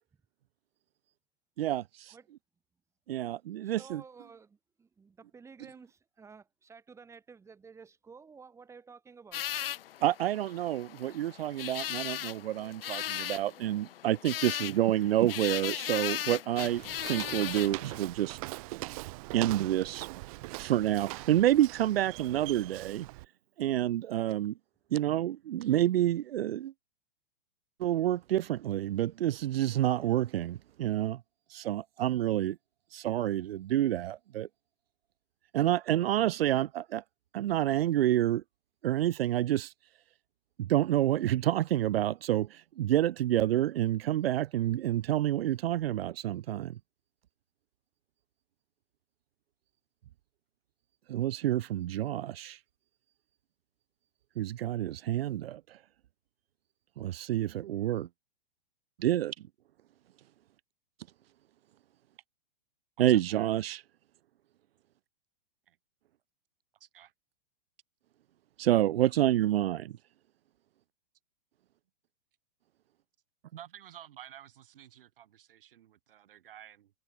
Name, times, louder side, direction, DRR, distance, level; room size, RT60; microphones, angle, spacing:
voice 1, 1.6-2.1 3.1-4.0 10.0-16.8 17.1-18.4 19.0-20.1 20.6-23.1 23.6-24.5 24.9-26.7 27.8-31.2 31.5-32.6 32.9-34.5 35.5-37.0 37.3-38.4 38.8-39.7 40.6-46.8 51.1-52.6 54.4-55.8 57.0-58.1 59.0-59.3 63.0-63.8 68.6-70.0, right 13 dB, 85° right, 0.6 m, -28 dB
voice 2, 3.6-9.5, right 5 dB, 10° right, 7.9 m, -53 dB
sound 1, 9.3-18.0, left 11 dB, 75° left, 1.1 m, -37 dB
Walk footsteps, 16.6-23.3, right 23 dB, 40° right, 1.4 m, -42 dB
voice 3, 63.0-63.5 65.7-65.8 66.8-67.1 73.5-76.9, right 11 dB, 70° right, 2.0 m, -51 dB
hypercardioid pair, 160°, 29 cm